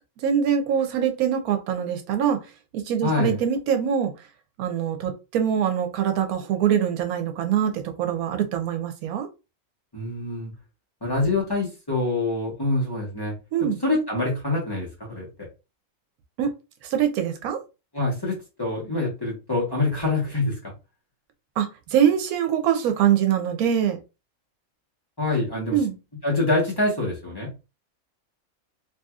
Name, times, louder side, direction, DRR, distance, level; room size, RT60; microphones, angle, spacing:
voice 1, 0.2-2.4 2.7-4.1 4.6-9.3 13.5-13.8 16.4-16.5 16.8-17.6 21.6-24.0 25.7-25.9, right 9 dB, 85° right, 1.1 m, -23 dB
voice 2, 3.0-3.4 9.9-10.5 11.0-13.3 13.8-15.3 17.9-20.7 25.2-25.8 26.2-27.5, left 2 dB, 20° left, 1.1 m, -25 dB
2.9 x 2.7 x 2.3 m
omnidirectional pair, 1.5 m